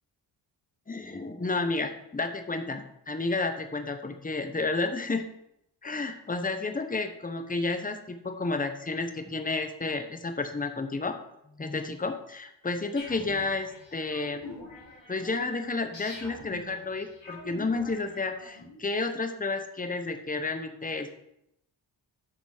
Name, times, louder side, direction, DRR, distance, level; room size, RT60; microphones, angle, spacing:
voice 1, 0.9-5.3 5.8-11.1 11.5-14.4 15.1-21.1, left 3 dB, 20° left, 7 dB, 0.9 m, -31 dB
sound 1, 13.0-18.8, left 2 dB, 70° left, 3.1 m, -45 dB
8.7 x 6.0 x 4.9 m, 0.78 s
wide cardioid pair, 80°, 46 cm